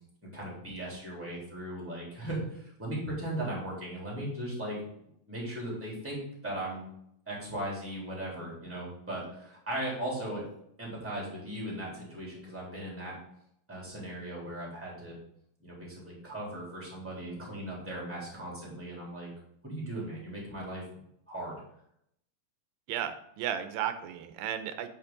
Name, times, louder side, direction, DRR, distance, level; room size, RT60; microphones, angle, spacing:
voice 1, 0.3-4.8 5.3-6.8 7.3-10.4 10.8-13.2 13.7-15.2 15.6-19.3 19.6-20.8 21.3-21.6, right 1 dB, 5° right, -4 dB, 2.9 m, -38 dB
voice 2, 22.9-24.9, right 10 dB, 90° right, 9 dB, 2.4 m, -34 dB
9.0 x 5.8 x 3.9 m, 0.73 s
omnidirectional pair, 4.0 m